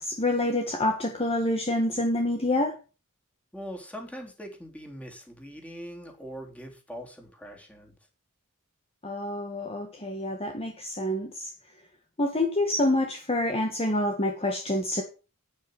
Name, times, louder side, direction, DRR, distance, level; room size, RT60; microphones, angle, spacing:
voice 1, 0.0-2.8 9.0-11.5 12.2-15.0, left 1 dB, 30° left, 3 dB, 1.7 m, -27 dB
voice 2, 3.5-8.0, equal, 5° left, 2 dB, 3.5 m, -42 dB
9.7 x 8.9 x 7.9 m, 0.34 s
head